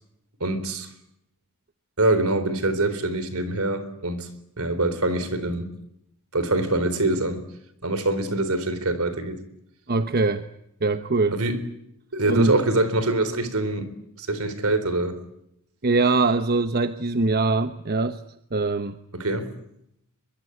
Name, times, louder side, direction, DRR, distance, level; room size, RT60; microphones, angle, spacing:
voice 1, 0.4-0.9 2.0-4.3 4.6-5.7 6.3-7.4 7.8-9.4 11.3-11.6 12.1-15.2 19.1-19.5, right 2 dB, 70° right, 3.8 m, -24 dB
voice 2, 9.9-10.5 10.8-11.4 12.3-12.6 15.8-18.2 18.5-19.0, right 3 dB, 45° right, 1.0 m, -22 dB
23.5 x 23.5 x 9.7 m
head